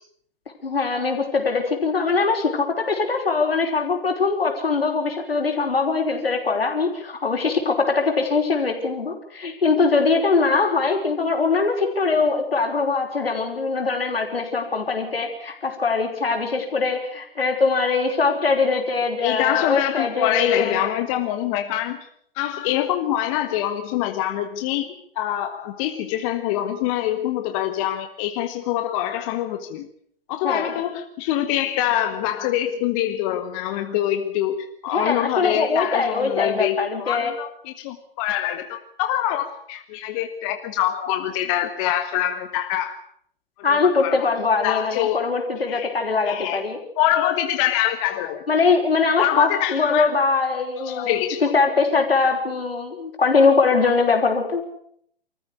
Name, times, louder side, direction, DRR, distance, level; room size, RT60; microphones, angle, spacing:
voice 1, 0.6-20.8 30.4-30.7 34.9-37.3 43.6-46.8 48.5-54.6, left 4 dB, 80° left, 3 dB, 5.3 m, -22 dB
voice 2, 19.2-22.1 22.3-29.9 30.3-43.0 43.7-44.3 44.6-45.3 45.7-45.9 46.2-46.6 47.0-48.4 49.2-50.1 50.8-51.5, left 12 dB, 35° left, 7 dB, 1.6 m, -25 dB
25.0 x 14.5 x 8.5 m, 0.66 s
figure-of-eight pair, 115°, 29 cm